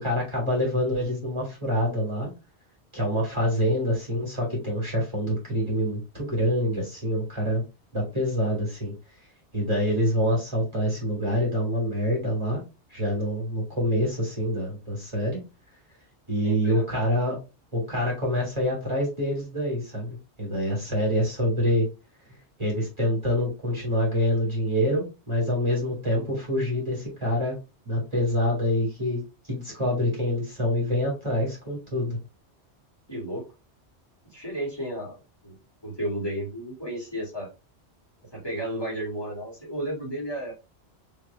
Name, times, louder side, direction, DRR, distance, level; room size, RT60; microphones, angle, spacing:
voice 1, 0.0-2.3 2.9-7.6 7.9-8.9 9.5-12.6 12.9-15.4 16.3-17.4 17.7-21.9 22.6-27.6 27.9-32.2, equal, 25° right, -4 dB, 2.0 m, -26 dB
voice 2, 16.4-16.8 33.1-33.5 34.3-35.2 35.4-35.5 35.8-37.5 38.3-40.5, right 1 dB, 20° left, -6 dB, 2.0 m, -32 dB
3.4 x 3.2 x 3.3 m, 0.28 s
omnidirectional pair, 1.2 m